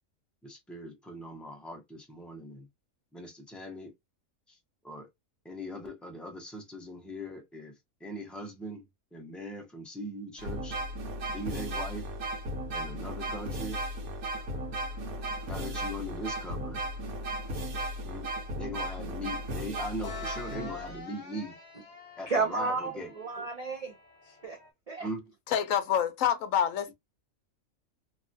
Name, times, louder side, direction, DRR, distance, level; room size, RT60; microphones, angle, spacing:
voice 1, 0.4-2.7 3.1-3.9 4.5-4.6 4.8-5.1 5.4-10.8 11.3-12.1 12.7-13.8 15.4-16.8 18.0-21.6 22.2-23.1 25.0-25.2 26.9-27.0, equal, ahead, 0.6 m, -40 dB
sound 1, 10.4-21.0, right 1 dB, 85° right, 1.3 m, -36 dB
sound 2, 14.3-24.7, left 5 dB, 35° left, 1.0 m, -49 dB
voice 2, 22.3-23.9 24.2-24.6 24.9-25.1, right 4 dB, 55° right, 0.4 m, -32 dB
voice 3, 25.5-26.9, left 9 dB, 70° left, 1.0 m, -27 dB
3.0 x 2.2 x 2.6 m
omnidirectional pair, 1.5 m